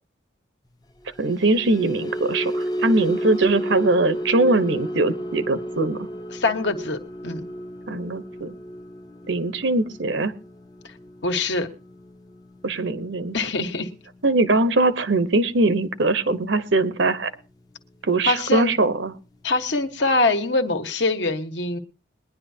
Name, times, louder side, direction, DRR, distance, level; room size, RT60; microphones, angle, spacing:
sound 1, 1.0-17.4 17.8-18.1 18.4-18.6, equal, 20° left, 0.6 m, -34 dB
voice 1, 1.2-6.0 7.9-8.5 9.3-10.3 12.6-13.4 14.2-17.3 18.0-19.1, right 2 dB, 75° right, 12 dB, 1.0 m, -21 dB
voice 2, 6.3-7.4 11.2-11.7 13.3-13.9 18.2-18.7 19.4-21.8, left 2 dB, 70° left, 6 dB, 1.4 m, -23 dB
21.5 x 10.5 x 2.8 m, 0.33 s
head